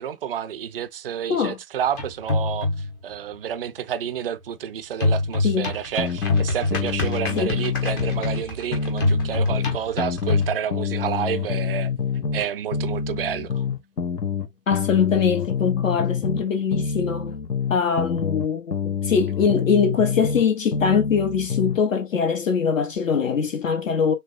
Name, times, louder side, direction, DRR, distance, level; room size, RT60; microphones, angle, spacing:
voice 1, 0.0-2.7 3.0-11.9 12.3-13.6, right 9 dB, 40° right, 0.4 m, -29 dB
sound 1, 1.9-3.0 5.0-10.6, left 2 dB, 15° left, 0.5 m, -26 dB
sound 2, 6.0-8.5 8.7-12.5 12.7-16.5 16.7-20.5 20.7-21.8, left 6 dB, 85° left, 0.8 m, -27 dB
voice 2, 14.7-17.3 17.7-24.1, left 6 dB, 55° left, 0.8 m, -22 dB
6.4 x 2.3 x 2.4 m
figure-of-eight pair, 115°, 48 cm